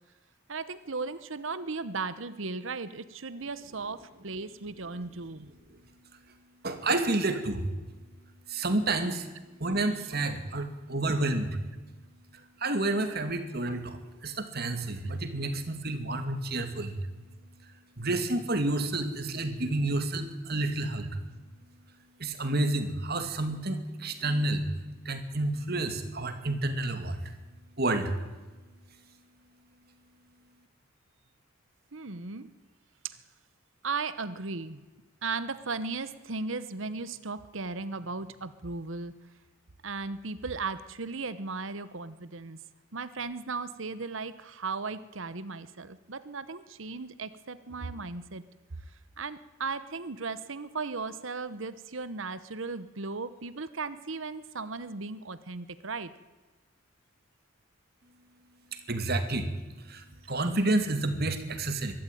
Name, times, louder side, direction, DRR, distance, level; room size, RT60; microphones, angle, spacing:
voice 1, 0.5-5.5 7.4-7.5 15.0-15.1 18.5-18.6 31.9-32.5 33.0-33.2 33.8-34.8 35.2-39.1 39.8-42.6 42.9-48.4 49.2-56.1 60.2-60.3, right 4 dB, 65° right, 14 dB, 1.0 m, -36 dB
voice 2, 6.6-7.6 8.5-9.3 9.6-11.6 12.6-17.0 18.0-21.2 22.2-24.6 25.0-27.3 27.8-28.1 58.9-59.5 59.9-61.9, right 2 dB, 50° right, 8 dB, 2.5 m, -30 dB
23.5 x 13.0 x 9.3 m, 1.2 s
head